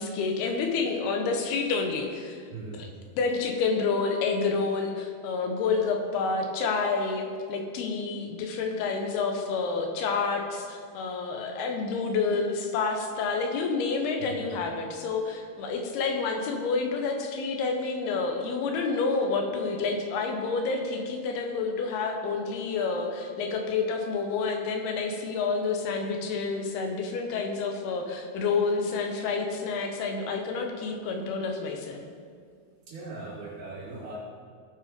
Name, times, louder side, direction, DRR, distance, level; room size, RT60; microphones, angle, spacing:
voice 1, 0.0-2.4 2.8-2.9 3.2-32.0, left 4 dB, 80° left, 3 dB, 3.1 m, -29 dB
voice 2, 2.5-2.8 14.2-14.5 32.9-34.2, right 3 dB, 65° right, -8 dB, 4.0 m, -39 dB
17.0 x 5.8 x 5.2 m, 2.1 s
omnidirectional pair, 4.6 m